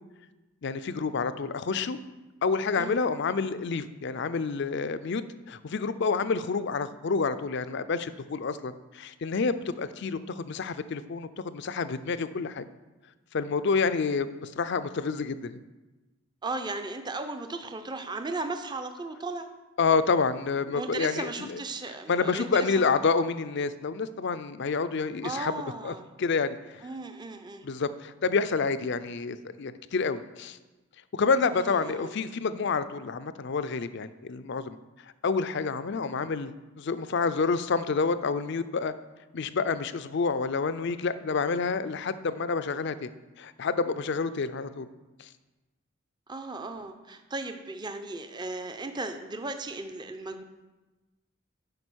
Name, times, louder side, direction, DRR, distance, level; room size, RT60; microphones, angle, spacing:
voice 1, 0.6-2.0 2.4-5.2 5.5-12.7 13.3-15.6 19.8-21.6 22.1-26.9 27.6-30.6 31.1-34.8 35.2-38.9 39.3-43.1 43.4-44.9 45.2-45.3, left 4 dB, 55° left, 13 dB, 0.5 m, -28 dB
voice 2, 16.4-19.5 20.7-22.9 25.2-26.1 26.8-27.7 31.5-32.1 46.3-50.4, right 3 dB, 20° right, 7 dB, 0.6 m, -36 dB
9.7 x 5.3 x 6.2 m, 1.1 s
head